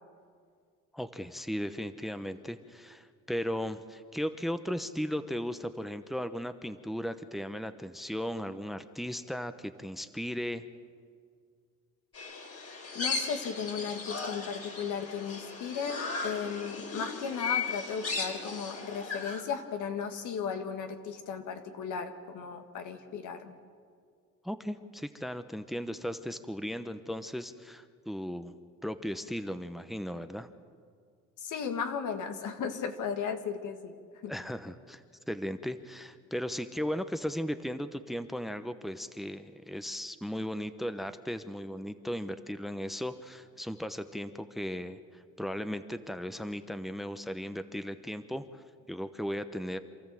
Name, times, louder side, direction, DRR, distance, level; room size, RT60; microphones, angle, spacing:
voice 1, 0.9-10.6 24.4-28.5 28.8-30.5 34.3-35.0 35.3-49.8, equal, ahead, 10 dB, 0.9 m, -36 dB
sound 1, 12.1-19.4, left 4 dB, 50° left, 3.6 m, -36 dB
voice 2, 12.9-23.6 31.4-33.9 34.2-34.3, left 6 dB, 80° left, 6 dB, 1.9 m, -36 dB
27.5 x 14.0 x 7.7 m, 2.1 s
cardioid pair, 90°, 30 cm